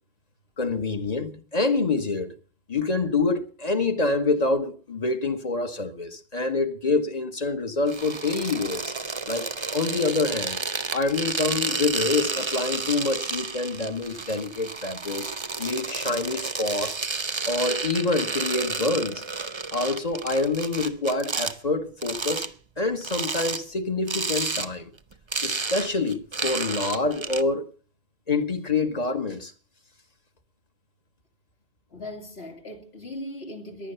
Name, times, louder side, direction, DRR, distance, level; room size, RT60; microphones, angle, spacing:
voice 1, 0.6-2.3 2.7-8.9 9.3-10.6 10.9-15.3 15.6-16.9 17.5-19.2 19.7-22.5 22.8-24.9 25.4-27.7 28.3-29.5, left 3 dB, 40° left, 1.3 m, -26 dB
sound 1, 7.9-21.6 22.0-22.5 23.0-23.6 24.1-24.7 25.0-27.4, right 4 dB, 30° right, 0.7 m, -31 dB
voice 2, 31.9-33.9, left 1 dB, 80° left, 2.9 m, -38 dB
15.5 x 11.0 x 6.8 m
omnidirectional pair, 1.0 m